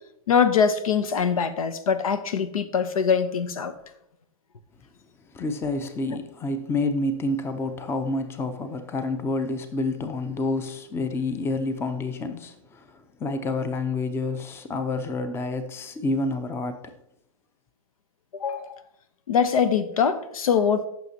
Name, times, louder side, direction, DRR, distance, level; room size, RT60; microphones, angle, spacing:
voice 1, 0.3-3.7 18.3-18.7 19.3-20.9, left 6 dB, 75° left, 0.9 m, -23 dB
voice 2, 5.3-16.9, left 2 dB, 15° left, 0.6 m, -28 dB
14.5 x 6.3 x 2.8 m
hypercardioid pair, 125°, 18 cm